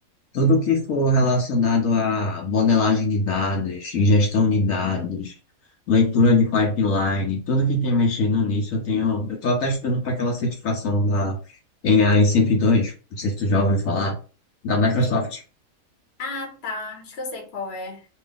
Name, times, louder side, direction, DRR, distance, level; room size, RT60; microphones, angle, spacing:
voice 1, 0.3-5.3 5.9-11.4 11.8-14.2 14.6-15.4, left 2 dB, 70° left, 1.2 m, -21 dB
voice 2, 15.0-15.3 16.2-18.1, left 3 dB, 50° left, 1.1 m, -33 dB
3.0 x 2.6 x 3.4 m
omnidirectional pair, 1.5 m